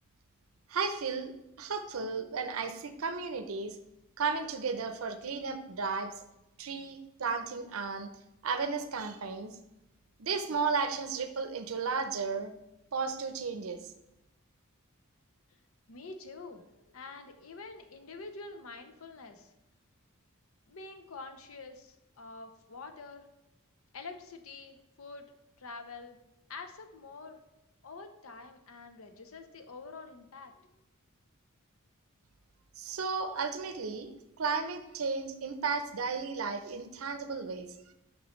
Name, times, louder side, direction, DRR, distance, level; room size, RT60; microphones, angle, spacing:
voice 1, 0.7-1.3 1.6-3.8 4.2-6.1 6.6-8.1 8.4-9.5 10.2-12.5 12.9-13.9 32.8-37.7, right 5 dB, 70° right, 9 dB, 0.6 m, -34 dB
voice 2, 15.9-19.5 20.7-23.3 23.9-25.3 25.6-26.2 26.5-27.4 27.8-30.7, left 3 dB, 70° left, 6 dB, 0.7 m, -46 dB
6.1 x 5.3 x 3.1 m, 0.90 s
head